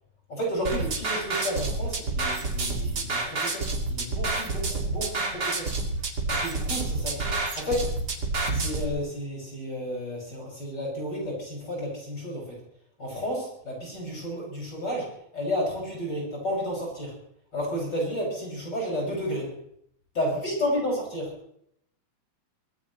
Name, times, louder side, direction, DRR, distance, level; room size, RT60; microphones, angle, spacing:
voice 1, 0.3-5.7 6.3-7.9 8.5-12.6 13.0-17.2 17.5-19.6 20.1-21.3, equal, 35° left, -3 dB, 7.0 m, -32 dB
sound 1, 0.6-8.8, right 3 dB, 35° right, 2.7 m, -29 dB
24.5 x 18.5 x 3.2 m, 0.71 s
omnidirectional pair, 3.5 m